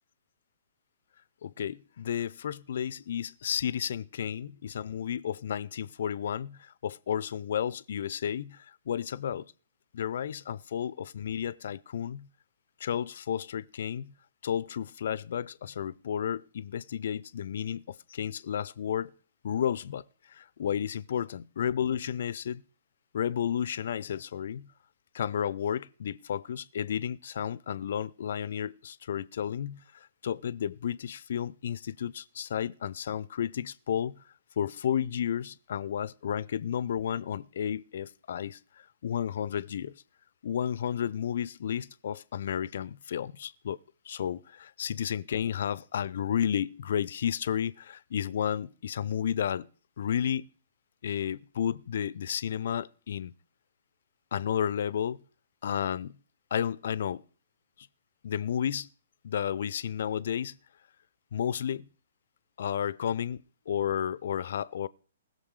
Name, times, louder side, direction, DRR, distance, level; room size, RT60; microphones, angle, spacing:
voice 1, 1.4-9.5 9.9-12.3 12.8-14.1 14.4-19.1 19.4-22.6 23.1-24.7 25.1-34.2 34.6-40.0 40.4-43.8 44.1-49.7 50.0-50.5 51.0-53.3 54.3-55.2 55.6-56.2 56.5-57.2 58.2-58.9 59.2-60.6 61.3-61.9 62.6-64.9, left 9 dB, 55° left, 0.6 m, -32 dB
20.0 x 6.9 x 4.8 m
figure-of-eight pair, 120°, 0 cm